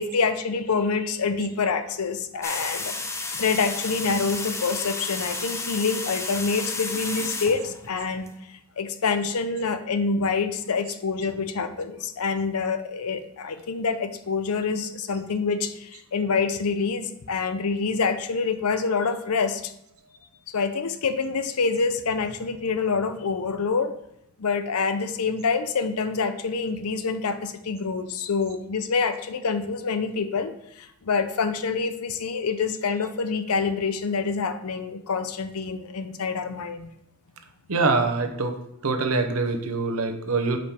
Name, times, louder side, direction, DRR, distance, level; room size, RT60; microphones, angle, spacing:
voice 1, 0.0-2.9 3.3-19.7 20.5-23.9 24.4-36.9, left 4 dB, 90° left, 10 dB, 0.6 m, -26 dB
sound 1, 2.4-8.3, left 3 dB, 15° left, 0.4 m, -32 dB
voice 2, 37.7-38.5 38.8-40.6, right 3 dB, 80° right, 6 dB, 0.8 m, -24 dB
5.2 x 5.1 x 4.4 m, 0.80 s
head